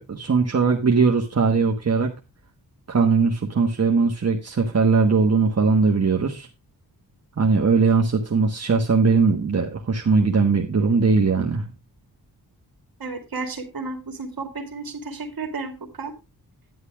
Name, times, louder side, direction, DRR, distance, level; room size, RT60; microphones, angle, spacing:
voice 1, 0.0-2.1 2.9-6.5 7.4-11.7, right 4 dB, 40° right, 1 dB, 1.3 m, -20 dB
voice 2, 13.0-16.1, right 3 dB, 60° right, 6 dB, 2.4 m, -32 dB
11.0 x 10.0 x 3.4 m, 0.26 s
wide cardioid pair, 150°, 39 cm